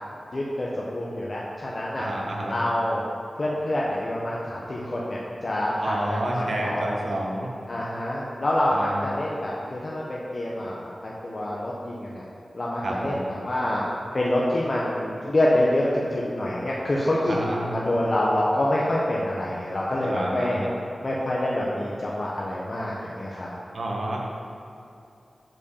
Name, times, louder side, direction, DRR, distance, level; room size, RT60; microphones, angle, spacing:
voice 1, 0.3-2.1 2.4-3.0 3.4-6.9 7.7-12.2 12.5-13.8 14.1-20.6 21.0-23.5, left 1 dB, 45° left, -5 dB, 1.0 m, -26 dB
voice 2, 2.0-2.5 5.8-7.5 8.7-9.0 12.8-13.3 17.3-17.7 20.0-20.7 23.7-24.2, right 1 dB, 75° right, -1 dB, 1.3 m, -29 dB
7.9 x 4.8 x 7.2 m, 2.6 s
wide cardioid pair, 80°, 0 cm